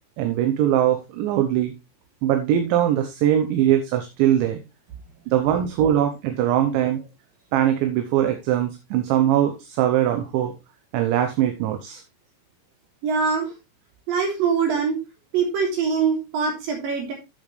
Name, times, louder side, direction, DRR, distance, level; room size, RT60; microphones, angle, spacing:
voice 1, 0.2-1.7 2.2-4.6 5.3-7.0 7.5-10.5 10.9-12.0, right 11 dB, 75° right, 6 dB, 3.1 m, -21 dB
voice 2, 13.0-13.5 14.1-15.0 15.3-17.1, right 5 dB, 50° right, 1 dB, 4.6 m, -23 dB
11.5 x 7.2 x 3.3 m, 0.25 s
omnidirectional pair, 5.8 m